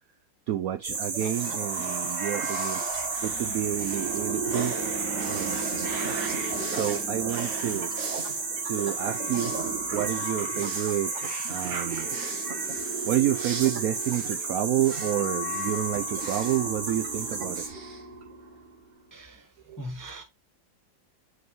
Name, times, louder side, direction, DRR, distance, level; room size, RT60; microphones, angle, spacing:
voice 1, 0.5-2.8 3.2-4.8 5.3-5.6 6.7-7.9 8.6-9.5 9.9-12.1 13.1-17.7 19.7-19.8, right 12 dB, 85° right, 0.7 m, -29 dB
sound 1, 0.8-17.7, right 4 dB, 40° right, 1.5 m, -33 dB
sound 2, 1.2-18.8, right 3 dB, 65° right, 2.0 m, -36 dB
voice 2, 19.1-19.5 19.8-20.2, equal, 20° left, 0.5 m, -39 dB
7.9 x 5.0 x 3.0 m
omnidirectional pair, 2.1 m